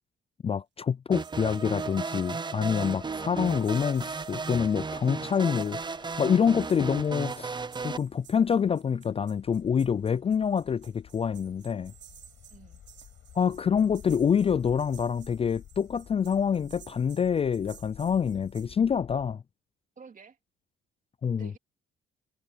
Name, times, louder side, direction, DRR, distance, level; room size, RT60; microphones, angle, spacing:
voice 1, 0.4-5.8 6.2-11.9 13.3-19.4 21.2-21.5, left 7 dB, 30° left, 0.4 m, -26 dB
sound 1, 1.1-8.0, right 4 dB, 20° right, 0.7 m, -35 dB
sound 2, 1.1-3.0 3.3-5.2 5.5-6.2 6.6-18.7, right 11 dB, 65° right, 1.3 m, -56 dB
voice 2, 3.0-3.8 5.1-5.5 12.5-12.8 20.0-20.4 21.4-21.6, right 6 dB, 40° right, 2.8 m, -51 dB
sound 3, 4.6-19.4, left 10 dB, 70° left, 5.6 m, -53 dB
cardioid pair, 90°, 20 cm